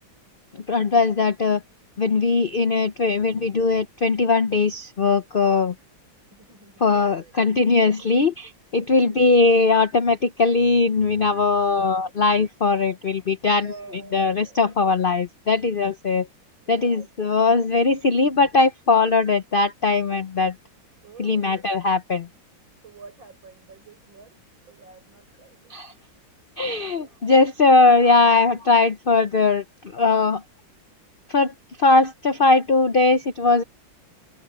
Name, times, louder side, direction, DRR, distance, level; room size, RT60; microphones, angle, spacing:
voice 1, 0.5-1.6 2.0-5.7 6.8-13.7 14.1-16.3 16.7-20.6 21.2-22.3 25.7-25.9 26.6-29.6 29.9-30.4 31.3-33.6, left 3 dB, 75° left, 0.5 m, -20 dB
voice 2, 6.3-8.1 8.8-9.2 13.5-14.7 16.4-17.1 21.0-21.5 22.8-26.0 27.0-27.3 28.0-28.2 28.6-28.7, right 4 dB, 75° right, 8.2 m, -47 dB
omnidirectional pair, 2.1 m